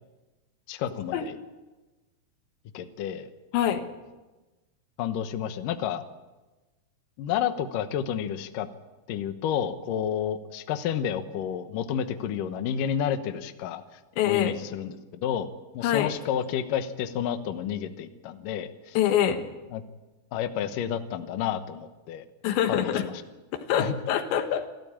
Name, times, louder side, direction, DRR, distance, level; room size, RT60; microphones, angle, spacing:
voice 1, 0.7-1.4 2.7-3.3 5.0-6.0 7.2-8.7 9.1-13.8 14.3-19.0 19.7-19.8 20.3-22.3 22.7-23.2 23.7-24.0, left 9 dB, 65° left, 9 dB, 2.3 m, -30 dB
voice 2, 14.2-14.5 15.8-16.1 19.0-19.5 22.4-23.1 23.5-24.7, left 10 dB, 90° left, 7 dB, 3.7 m, -25 dB
28.0 x 13.0 x 8.7 m, 1.2 s
omnidirectional pair, 5.0 m